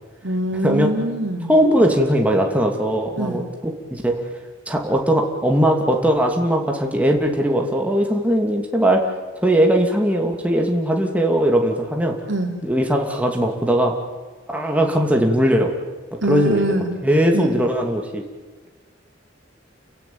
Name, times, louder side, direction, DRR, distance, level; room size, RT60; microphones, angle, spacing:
voice 1, 0.2-1.5 3.2-3.4 12.3-12.5 16.2-16.9 17.3-17.6, right 1 dB, 70° right, 3 dB, 3.6 m, -23 dB
voice 2, 1.5-4.2 4.7-9.0 9.4-12.2 12.6-13.9 14.5-15.7 16.3-18.2, equal, 10° right, 1 dB, 2.6 m, -19 dB
29.5 x 16.0 x 9.4 m, 1.3 s
head